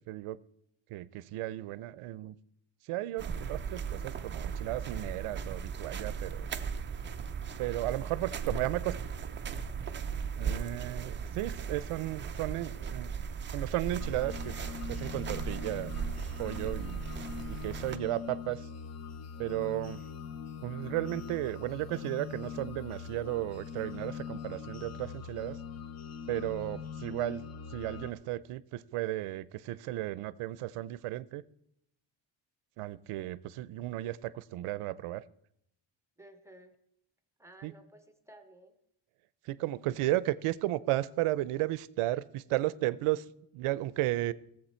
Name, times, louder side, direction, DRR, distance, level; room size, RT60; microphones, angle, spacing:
voice 1, 0.1-0.4 0.9-2.4 2.8-6.5 7.6-9.0 10.4-13.1 13.5-14.6 14.9-15.9 16.4-17.0 17.6-18.7 19.4-20.0 20.6-25.6 26.3-27.4 27.7-31.4 32.8-35.2 37.6-37.7 39.4-44.3, right 16 dB, 85° right, 0.6 m, -34 dB
sound 1, 3.2-18.0, right 6 dB, 25° right, 0.4 m, -37 dB
sound 2, 14.0-28.1, left 7 dB, 35° left, 0.5 m, -42 dB
voice 2, 36.2-36.7 37.4-38.8, right 1 dB, 5° right, 0.7 m, -55 dB
17.5 x 7.4 x 4.4 m
cardioid pair, 180°, 50 cm